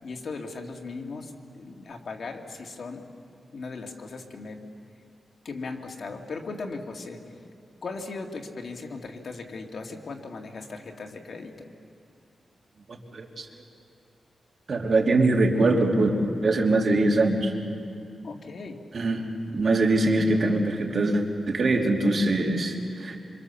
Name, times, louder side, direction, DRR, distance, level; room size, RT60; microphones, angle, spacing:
voice 1, 0.0-3.0 3.5-4.6 5.4-7.2 7.8-11.7 18.2-18.8, left 3 dB, 60° left, 2 dB, 2.4 m, -38 dB
voice 2, 13.1-13.5 14.7-16.1 16.4-17.5 18.9-23.2, right 2 dB, 50° right, 0 dB, 3.0 m, -23 dB
26.5 x 25.5 x 7.1 m, 2.5 s
wide cardioid pair, 130°, 0 cm